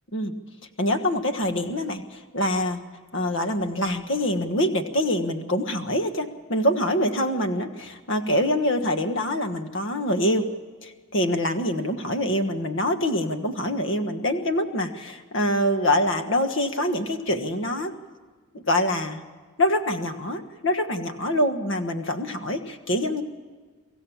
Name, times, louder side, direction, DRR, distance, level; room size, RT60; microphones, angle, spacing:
voice 1, 0.8-2.8 3.1-10.5 10.8-17.9 18.5-19.2 19.6-23.2, left 1 dB, 55° left, 7 dB, 1.4 m, -25 dB
24.5 x 15.5 x 7.2 m, 1.5 s
head